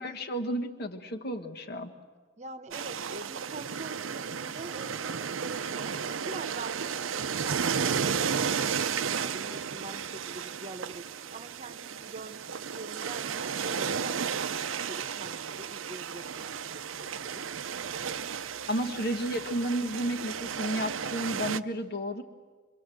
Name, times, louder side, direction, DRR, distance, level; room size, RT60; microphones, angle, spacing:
voice 1, 0.0-1.9 18.7-22.2, equal, 55° left, 5 dB, 1.5 m, -32 dB
voice 2, 2.4-12.5 12.7-17.5, right 2 dB, 35° right, 10 dB, 1.1 m, -44 dB
sound 1, 2.7-21.6, right 6 dB, 90° right, 0.7 m, -33 dB
26.5 x 24.0 x 7.8 m, 1.5 s
head